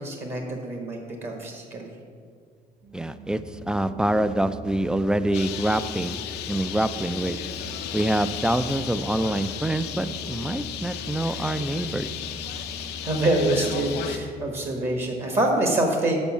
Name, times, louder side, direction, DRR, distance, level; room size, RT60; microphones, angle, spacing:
voice 1, 0.0-1.9 12.8-16.2, right 1 dB, 40° right, 1 dB, 1.3 m, -26 dB
sound 1, 2.8-14.1, equal, 85° right, 1.9 m, -41 dB
voice 2, 2.9-6.2 6.5-7.4 7.9-12.1, right 1 dB, 5° right, 13 dB, 0.3 m, -26 dB
Bird, 5.3-14.2, left 10 dB, 80° left, 0.6 m, -35 dB
7.0 x 5.3 x 7.2 m, 2.2 s
cardioid pair, 110°, 17 cm